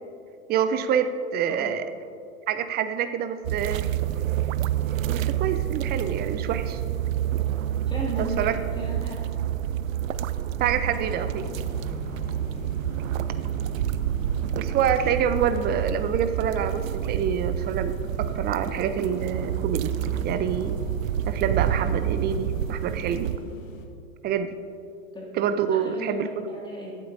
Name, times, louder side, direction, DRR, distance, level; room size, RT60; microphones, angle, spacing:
voice 1, 0.5-1.9 2.5-3.8 5.1-6.8 8.2-8.6 10.6-11.5 14.6-19.9 20.2-20.8 21.3-23.3 24.2-24.5 25.3-26.3, right 8 dB, 25° right, 10 dB, 0.6 m, -26 dB
sound 1, 3.4-23.4, right 10 dB, 70° right, 0.6 m, -28 dB
voice 2, 7.9-9.1 12.4-12.5 25.1-25.3 25.7-27.0, equal, 10° left, -4 dB, 2.4 m, -36 dB
sound 2, 10.8-23.9, left 3 dB, 65° left, 1.3 m, -43 dB
22.0 x 8.2 x 2.7 m, 2.6 s
figure-of-eight pair, 95°, 42 cm